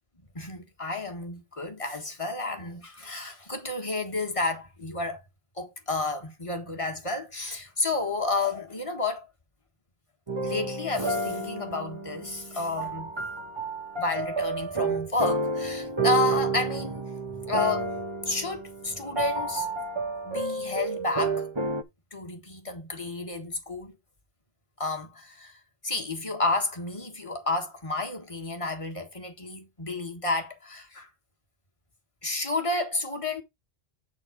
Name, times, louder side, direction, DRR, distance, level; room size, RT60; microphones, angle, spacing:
voice 1, 0.3-5.2 5.6-9.3 10.4-13.1 14.0-19.7 20.2-21.5 22.1-24.0 24.8-25.6 25.8-31.1 32.2-33.4, left 3 dB, 30° left, 1.7 m, -31 dB
sound 1, 10.3-21.8, right 3 dB, 25° right, 1.1 m, -30 dB
8.6 x 4.0 x 5.0 m
omnidirectional pair, 1.1 m